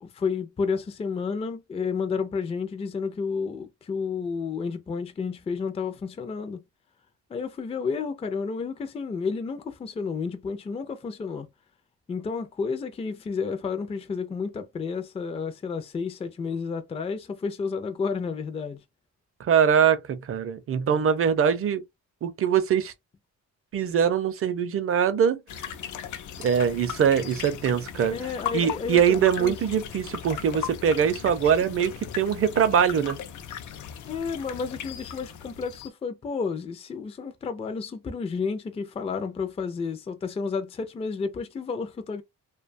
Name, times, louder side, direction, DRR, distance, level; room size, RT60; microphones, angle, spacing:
voice 1, 0.0-6.6 7.3-11.5 12.1-18.8 28.1-29.5 34.1-42.2, left 5 dB, 20° left, 0.3 m, -31 dB
voice 2, 19.4-21.8 22.2-22.9 23.7-25.4 26.4-28.1 28.5-33.2, right 8 dB, 50° right, 0.5 m, -23 dB
sound 1, 25.5-35.9, left 9 dB, 75° left, 0.5 m, -38 dB
2.5 x 2.2 x 2.5 m
cardioid pair, 115°, 30 cm